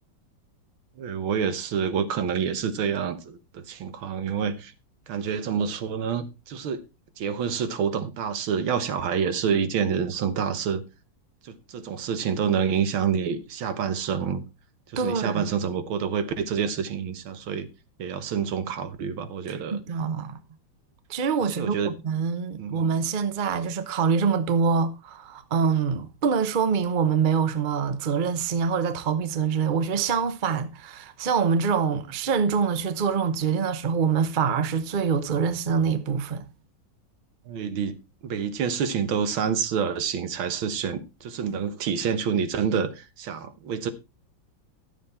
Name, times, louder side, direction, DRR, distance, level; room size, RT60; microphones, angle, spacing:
voice 1, 1.0-4.7 5.1-6.8 7.2-10.8 11.4-14.4 14.9-17.7 18.0-19.8 21.4-22.0 22.6-22.9 37.5-38.0 38.2-43.9, right 7 dB, 85° right, 1.9 m, -27 dB
voice 2, 15.0-15.4 19.7-20.4 21.1-36.4, right 6 dB, 40° right, 0.7 m, -25 dB
11.5 x 7.4 x 4.2 m
omnidirectional pair, 2.2 m